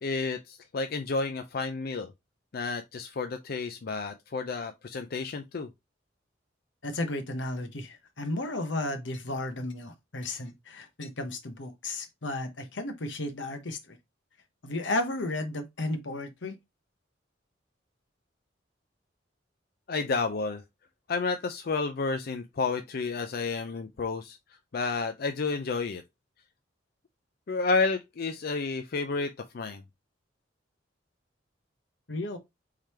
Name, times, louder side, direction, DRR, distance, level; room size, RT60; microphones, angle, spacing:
voice 1, 0.0-2.1 2.5-5.7 19.9-20.6 21.1-24.4 24.7-26.0 27.5-29.8, left 4 dB, 55° left, 0.5 m, -31 dB
voice 2, 6.8-14.0 14.6-16.6 32.1-32.4, left 2 dB, 85° left, 1.1 m, -33 dB
3.7 x 3.3 x 4.3 m
head